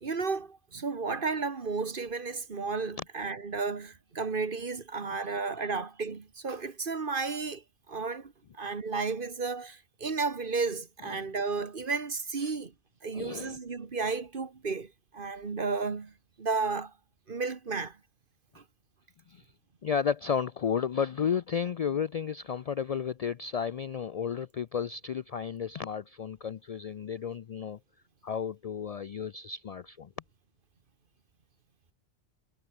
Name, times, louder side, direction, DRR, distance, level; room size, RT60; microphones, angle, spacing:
voice 1, 0.0-7.6 7.9-12.7 13.0-16.9 17.3-18.0 18.5-18.6, right 4 dB, 50° right, 1.5 m, -33 dB
voice 2, 13.1-13.6 19.3-19.4 19.8-27.8 28.2-30.1, left 7 dB, 70° left, 0.3 m, -32 dB
omnidirectional pair, 1.2 m